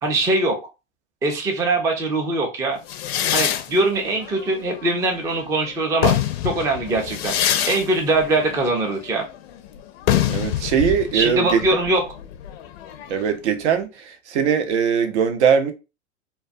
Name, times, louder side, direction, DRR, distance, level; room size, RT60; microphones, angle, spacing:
voice 1, 0.0-0.6 1.2-2.8 3.3-6.1 6.4-7.3 7.7-9.3 11.1-12.0, right 2 dB, 10° right, 0.4 m, -22 dB
sound 1, 2.9-5.4 5.8-13.3, left 11 dB, 55° left, 0.5 m, -26 dB
voice 2, 10.3-11.6 13.1-15.7, right 7 dB, 60° right, 0.6 m, -21 dB
2.2 x 2.2 x 2.5 m
hypercardioid pair, 95°, 39 cm